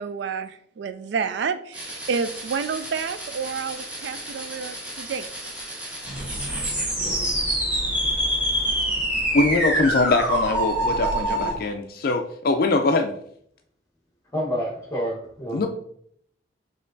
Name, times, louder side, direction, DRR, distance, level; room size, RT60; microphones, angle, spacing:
voice 1, 0.0-5.3, right 5 dB, 65° right, 12 dB, 0.3 m, -29 dB
sound 1, 1.7-11.5, right 1 dB, 10° right, 1.3 m, -27 dB
sound 2, 6.0-11.6, equal, 30° right, 1.0 m, -36 dB
voice 2, 9.3-13.1 15.5-15.7, left 3 dB, 50° left, 7 dB, 0.4 m, -22 dB
voice 3, 14.3-15.7, equal, 15° left, -1 dB, 1.2 m, -28 dB
6.3 x 3.2 x 2.7 m, 0.66 s
head